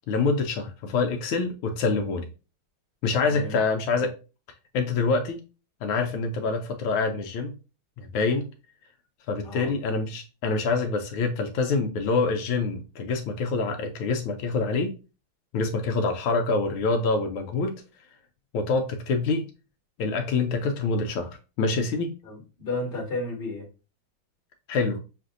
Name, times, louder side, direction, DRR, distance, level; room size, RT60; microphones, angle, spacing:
voice 1, 0.1-2.3 3.0-4.1 4.7-5.4 5.8-7.5 8.0-8.5 9.3-14.9 15.5-17.8 18.5-19.5 20.0-22.1 24.7-25.0, left 4 dB, 80° left, 1.4 m, -26 dB
voice 2, 3.2-3.5 9.4-9.7 22.2-23.7, left 2 dB, 25° left, 1.5 m, -33 dB
6.6 x 2.5 x 2.5 m
omnidirectional pair, 2.3 m